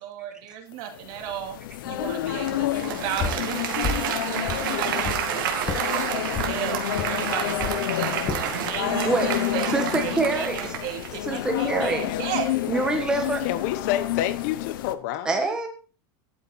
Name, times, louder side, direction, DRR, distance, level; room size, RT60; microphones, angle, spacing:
voice 1, 0.0-1.6 1.8-12.5, right 10 dB, 40° right, 2.3 m, -34 dB
sound 1, 0.9-14.9, left 14 dB, 70° left, 0.9 m, -30 dB
Applause, 2.4-11.3, right 9 dB, 70° right, 2.4 m, -30 dB
sound 2, 3.2-3.5 3.8-4.1 4.4-5.2 5.6-5.8 6.3-6.5 7.0-7.1 7.6-7.8 8.3-8.5 9.0-9.4, left 5 dB, 20° left, 1.8 m, -30 dB
voice 2, 9.7-10.7 11.3-12.1 12.7-13.4 15.2-15.7, right 3 dB, 5° right, 1.3 m, -25 dB
voice 3, 13.4-15.6, left 12 dB, 45° left, 1.1 m, -28 dB
12.0 x 8.8 x 4.2 m
supercardioid pair, 180°, 12 cm